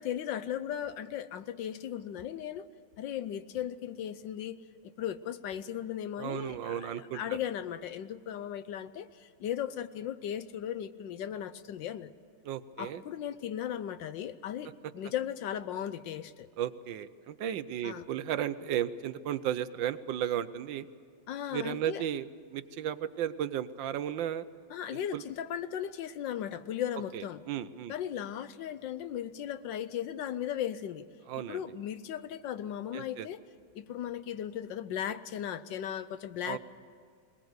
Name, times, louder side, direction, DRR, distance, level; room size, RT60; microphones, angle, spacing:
voice 1, 0.0-2.7 3.0-4.6 4.8-12.1 12.8-16.5 17.8-18.0 21.3-22.0 24.7-27.4 27.9-31.1 31.4-33.4 33.7-36.6, left 10 dB, 70° left, 13 dB, 1.3 m, -37 dB
voice 2, 6.2-7.2 12.4-13.0 16.6-20.8 21.5-24.4 24.9-25.2 27.1-27.9 31.3-31.6 32.9-33.3 36.4-36.6, right 10 dB, 70° right, 13 dB, 1.4 m, -34 dB
21.5 x 19.5 x 8.0 m, 2.2 s
omnidirectional pair, 2.2 m